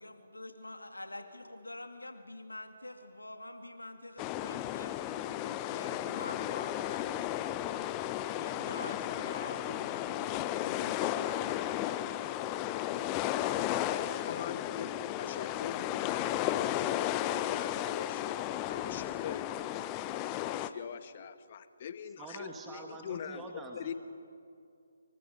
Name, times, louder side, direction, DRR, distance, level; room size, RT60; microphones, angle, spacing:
voice 1, 0.0-7.5 8.4-11.3, left 1 dB, 90° left, 6 dB, 2.4 m, -46 dB
sound 1, 4.2-20.7, left 13 dB, 20° left, 0.7 m, -34 dB
voice 2, 14.0-14.9 15.2-18.2 18.6-19.5 20.4-23.5 23.7-23.9, left 8 dB, 40° left, 12 dB, 1.2 m, -43 dB
voice 3, 22.2-23.8, right 3 dB, 10° right, 1 dB, 2.0 m, -45 dB
27.5 x 24.0 x 5.4 m, 2.4 s
figure-of-eight pair, 145°, 0 cm